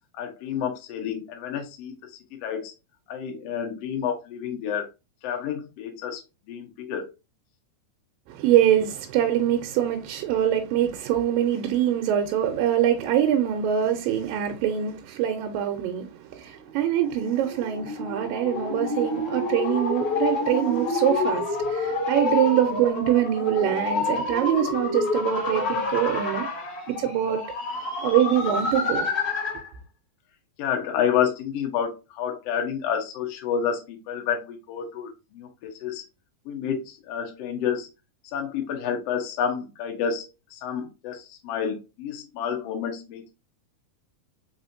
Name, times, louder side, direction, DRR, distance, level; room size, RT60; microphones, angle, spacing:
voice 1, 0.2-1.9 2.4-2.7 3.1-4.9 5.2-6.2 6.5-7.1 30.6-36.0 36.4-37.9 38.2-43.3, left 8 dB, 85° left, 1.4 m, -29 dB
voice 2, 8.3-26.5 26.9-27.4 28.0-29.1, right 10 dB, 80° right, 2.2 m, -24 dB
sound 1, 17.0-29.7, left 3 dB, 25° left, 2.3 m, -28 dB
4.9 x 4.1 x 2.6 m
omnidirectional pair, 4.3 m